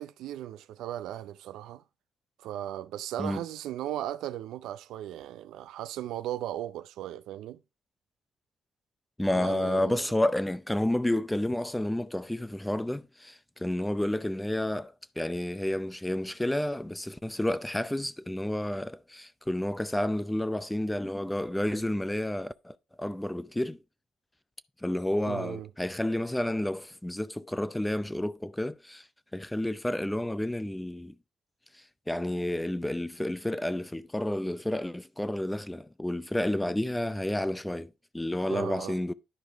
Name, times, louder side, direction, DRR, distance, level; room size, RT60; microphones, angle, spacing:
voice 1, 0.0-1.8 2.4-7.6 9.3-10.1 25.3-25.7 38.5-39.0, right 12 dB, 85° right, 0.5 m, -37 dB
voice 2, 9.2-23.8 24.8-29.0 29.3-31.2 32.1-39.1, left 1 dB, 10° left, 0.5 m, -30 dB
11.0 x 5.0 x 3.4 m
cardioid pair, 90°, 0 cm